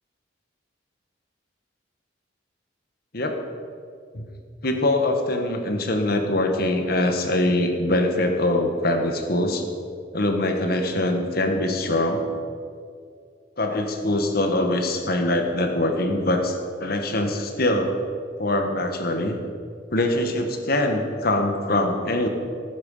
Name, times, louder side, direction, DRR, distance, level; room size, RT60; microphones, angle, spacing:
voice 1, 4.6-9.6 10.1-12.2 13.6-17.9 18.4-19.4 19.9-22.3, left 1 dB, 50° left, 4 dB, 1.6 m, -23 dB
17.5 x 9.5 x 5.6 m, 2.3 s
head